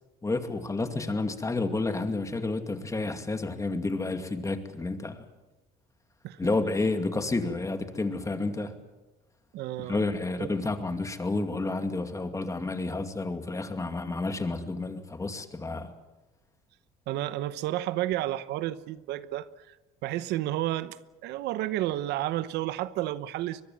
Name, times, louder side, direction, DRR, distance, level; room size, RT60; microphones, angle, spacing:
voice 1, 0.2-5.2 6.4-8.7 9.8-15.9, left 3 dB, 20° left, 7 dB, 2.4 m, -30 dB
voice 2, 9.5-10.0 10.4-10.5 17.1-19.8 20.0-23.6, right 14 dB, 85° right, 15 dB, 1.0 m, -31 dB
24.0 x 21.5 x 7.4 m, 1.1 s
cardioid pair, 110°, 17 cm